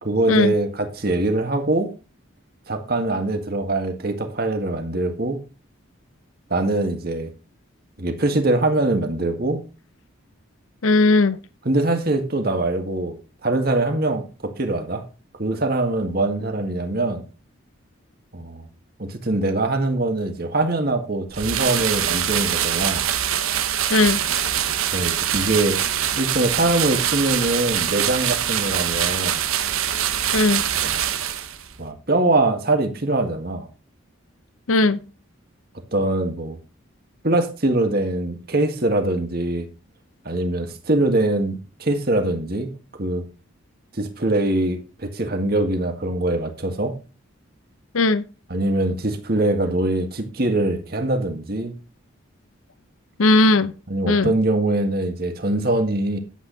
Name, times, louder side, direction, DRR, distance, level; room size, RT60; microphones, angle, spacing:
voice 1, 0.0-1.9 2.7-5.4 6.5-7.3 8.0-9.6 11.6-13.2 13.4-15.0 15.4-17.2 18.3-18.6 19.0-23.0 24.9-25.8 26.2-29.4 30.7-31.0 31.8-33.7 35.9-36.6 37.2-39.7 40.3-42.7 43.0-43.3 44.0-47.0 48.5-51.8 53.9-56.2, right 2 dB, 45° right, 1.8 m, -23 dB
voice 2, 10.8-11.4 23.9-24.2 30.3-30.6 34.7-35.0 47.9-48.2 53.2-53.7 54.1-54.3, left 2 dB, 80° left, 0.7 m, -17 dB
sound 1, 21.3-31.7, right 10 dB, 90° right, 1.0 m, -24 dB
11.0 x 8.3 x 4.0 m
head